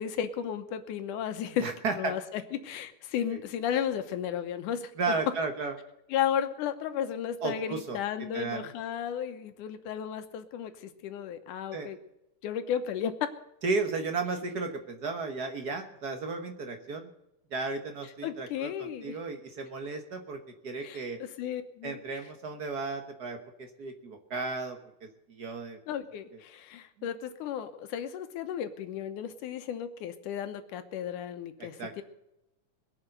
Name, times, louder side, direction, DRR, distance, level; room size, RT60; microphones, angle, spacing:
voice 1, 0.0-1.7 2.0-4.9 6.1-12.0 12.4-13.1 18.2-19.2 20.8-22.0 25.9-32.0, left 9 dB, 80° left, 9 dB, 2.5 m, -34 dB
voice 2, 1.6-2.1 3.3-3.4 5.0-5.7 7.4-8.0 8.3-8.6 11.7-11.9 13.6-17.1 17.5-21.2 21.8-25.8 27.0-27.1 31.8-31.9, right 4 dB, 60° right, 5 dB, 1.0 m, -34 dB
21.5 x 7.2 x 6.6 m, 0.87 s
omnidirectional pair, 3.6 m